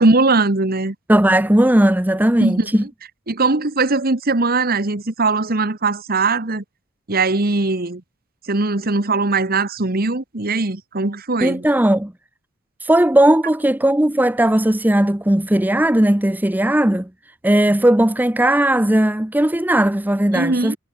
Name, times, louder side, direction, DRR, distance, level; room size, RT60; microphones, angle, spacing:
voice 1, 0.0-0.9 2.4-2.9 3.3-6.6 7.1-8.0 8.5-11.6 20.3-20.8, right 3 dB, 50° right, 1.5 m, -20 dB
voice 2, 1.1-2.8 11.4-12.1 12.8-17.1 17.4-20.8, right 1 dB, 10° right, 0.7 m, -17 dB
head